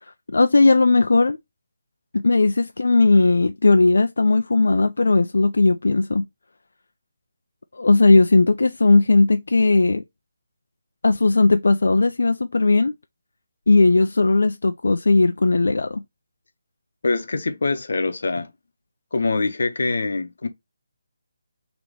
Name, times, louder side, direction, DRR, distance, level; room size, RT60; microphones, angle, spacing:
voice 1, 0.3-1.4 2.1-6.2 7.7-10.0 11.0-12.9 13.7-16.0, left 3 dB, 75° left, 0.3 m, -17 dB
voice 2, 17.0-18.5 19.1-20.5, left 3 dB, 55° left, 0.8 m, -24 dB
3.8 x 2.9 x 3.2 m
hypercardioid pair, 180°, 0 cm